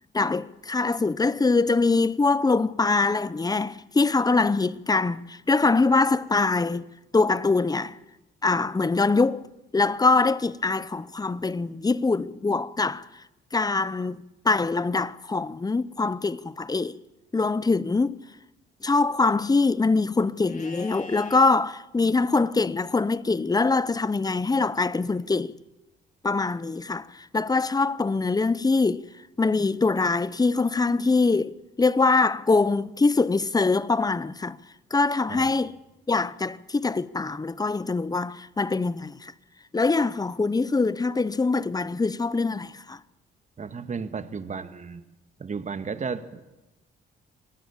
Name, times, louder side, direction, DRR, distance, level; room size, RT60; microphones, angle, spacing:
voice 1, 0.1-6.8 7.1-8.0 8.4-9.5 9.7-13.1 13.5-17.0 17.3-18.2 18.8-25.5 26.2-29.0 29.4-34.6 34.9-35.8 36.1-39.3 39.7-43.0, left 3 dB, 20° left, 0.8 m, -23 dB
Livestock farm animals working animals, 20.4-21.5 24.3-25.3, left 3 dB, 40° left, 4.6 m, -46 dB
voice 2, 43.6-45.0 45.4-46.4, right 5 dB, 35° right, 1.8 m, -33 dB
25.5 x 18.5 x 7.2 m
cardioid pair, 90°, 20 cm